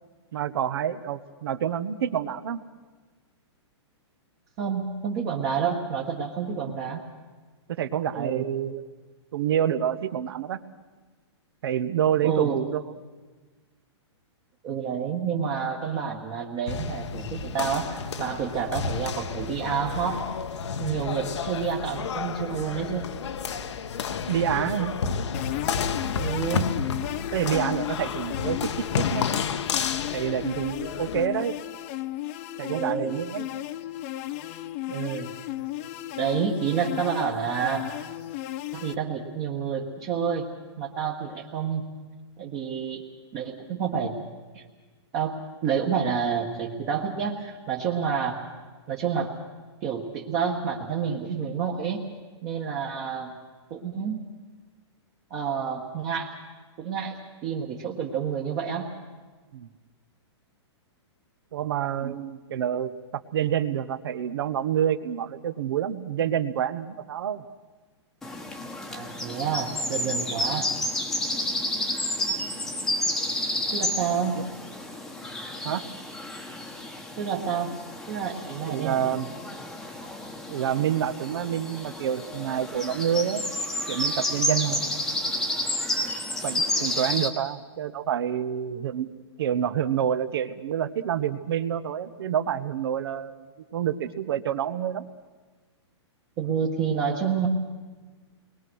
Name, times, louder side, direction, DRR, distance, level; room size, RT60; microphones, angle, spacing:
voice 1, 0.3-2.6 6.6-6.7 7.8-8.8 9.3-10.6 11.6-12.8 24.3-24.9 27.3-29.3 30.1-31.5 32.6-33.5 59.5-59.7 61.5-62.9 63.3-67.4 74.4-74.5 75.6-75.8 78.7-79.3 80.5-83.4 83.9-84.9 86.4-89.1 89.4-95.1, right 9 dB, 55° right, 13 dB, 1.3 m, -28 dB
voice 2, 4.6-7.0 8.1-8.5 12.2-12.6 14.6-20.3 20.8-23.1 26.2-26.7 32.7-33.1 34.9-35.3 36.2-37.9 38.7-40.5 40.8-41.8 42.4-43.0 43.3-44.2 44.5-44.6 45.1-45.4 45.6-48.4 48.9-49.3 49.8-52.1 52.4-53.3 53.7-54.2 55.3-56.3 56.8-58.9 68.9-70.7 73.7-74.5 77.2-77.7 78.1-79.2 84.5-84.8 96.4-97.5, right 7 dB, 25° right, -1 dB, 1.6 m, -29 dB
sound 1, 16.7-31.3, left 6 dB, 75° left, 1.3 m, -31 dB
sound 2, 25.3-39.0, left 14 dB, 30° left, 0.7 m, -35 dB
sound 3, 68.2-87.3, left 1 dB, 5° left, 1.3 m, -31 dB
29.5 x 21.5 x 6.4 m, 1.3 s
hypercardioid pair, 165°, 15 cm